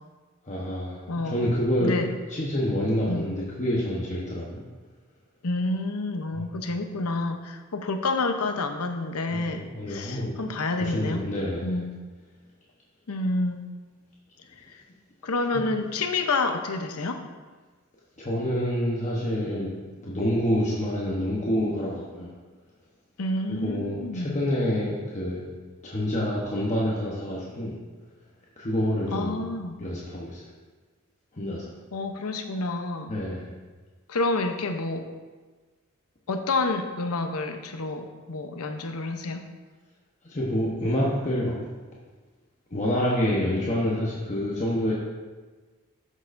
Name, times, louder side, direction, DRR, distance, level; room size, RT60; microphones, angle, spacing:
voice 1, 0.4-2.0 2.3-4.6 6.3-6.5 9.3-10.4 10.8-11.8 15.5-15.6 18.2-19.7 20.0-22.3 23.5-25.5 25.8-27.7 28.6-29.4 29.8-30.4 31.3-31.7 33.1-33.4 40.2-41.5 42.7-44.9, equal, 35° left, -5 dB, 1.0 m, -27 dB
voice 2, 1.1-1.4 1.8-2.1 3.1-3.3 5.4-11.2 11.6-12.0 13.1-13.6 14.6-14.7 15.2-17.2 23.2-24.4 29.1-29.8 31.9-33.1 34.1-35.1 36.3-39.4, left 2 dB, 85° left, 6 dB, 0.8 m, -29 dB
12.5 x 6.4 x 2.6 m, 1.3 s
head